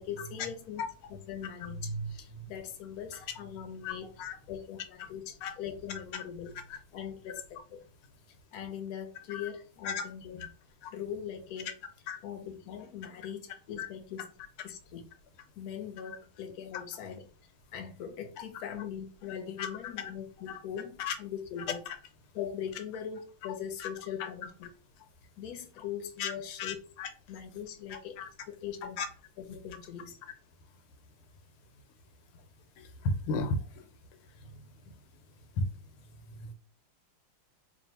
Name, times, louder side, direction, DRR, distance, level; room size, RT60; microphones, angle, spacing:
voice 1, 0.0-4.2 4.5-6.6 6.9-7.8 8.5-10.5 10.9-11.8 12.2-14.3 14.6-15.1 15.6-17.3 17.7-21.8 22.3-24.7 25.4-26.9 27.3-29.0 29.4-30.2, left 7 dB, 65° left, 1.0 m, -41 dB
voice 2, 33.0-33.8 35.6-35.7, left 3 dB, 90° left, 1.6 m, -32 dB
3.4 x 2.5 x 4.2 m
omnidirectional pair, 2.3 m